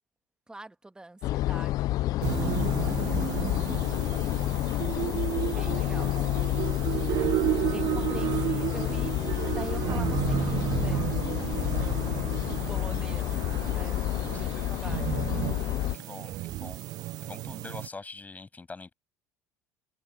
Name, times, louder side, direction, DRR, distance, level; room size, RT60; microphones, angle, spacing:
voice 1, 0.5-2.1 2.4-4.1 4.9-6.9 7.7-9.1 9.5-15.2, right 2 dB, 10° right, 2.3 m, -45 dB
sound 1, 1.2-16.0, left 16 dB, 50° left, 0.5 m, -29 dB
sound 2, 2.2-17.9, right 17 dB, 50° right, 0.6 m, -32 dB
voice 2, 15.9-16.8 17.2-18.9, left 4 dB, 20° left, 8.0 m, -44 dB
sound 3, 16.1-16.7, left 36 dB, 65° left, 5.1 m, -52 dB
figure-of-eight pair, 65°, 8 cm